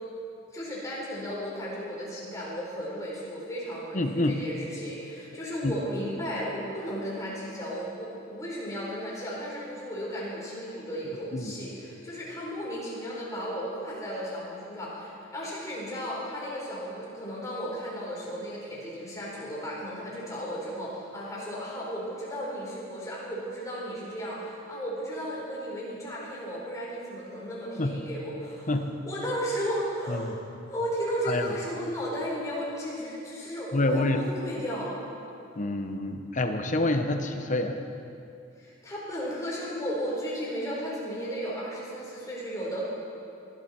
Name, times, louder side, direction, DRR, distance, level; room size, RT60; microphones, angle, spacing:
voice 1, 0.5-28.7 29.1-30.4 30.7-34.9 38.6-42.8, equal, 15° left, -6 dB, 4.3 m, -34 dB
voice 2, 3.9-4.3 5.6-5.7 11.3-11.5 27.8-27.9 28.7-28.9 30.1-30.3 31.3-31.5 33.7-34.2 35.6-37.8, left 2 dB, 40° left, 6 dB, 0.9 m, -27 dB
18.5 x 12.0 x 4.4 m, 2.6 s
head